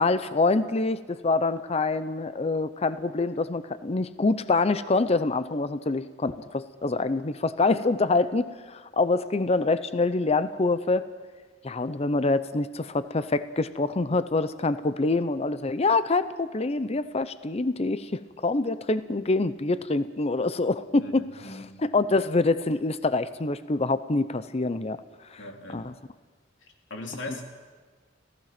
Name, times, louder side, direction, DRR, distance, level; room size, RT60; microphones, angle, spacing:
voice 1, 0.0-11.1 11.6-25.0 25.3-25.4 25.7-25.9, left 3 dB, 35° left, 13 dB, 0.6 m, -26 dB
voice 2, 21.0-21.6 25.4-25.9 26.9-27.4, left 2 dB, 90° left, 2 dB, 3.0 m, -39 dB
30.0 x 15.0 x 5.9 m, 1.5 s
head